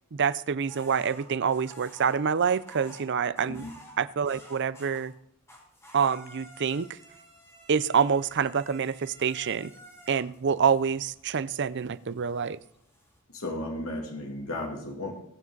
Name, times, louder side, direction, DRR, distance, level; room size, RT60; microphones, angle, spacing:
voice 1, 0.1-3.7 4.0-5.1 5.9-6.9 7.7-9.7 10.1-12.6, right 6 dB, 55° right, 17 dB, 0.5 m, -26 dB
sound 1, 0.7-5.2 5.5-13.2, equal, 15° left, 4.4 m, -52 dB
voice 2, 13.3-15.1, left 1 dB, 80° left, 0 dB, 2.8 m, -34 dB
21.0 x 7.5 x 4.0 m, 0.76 s
head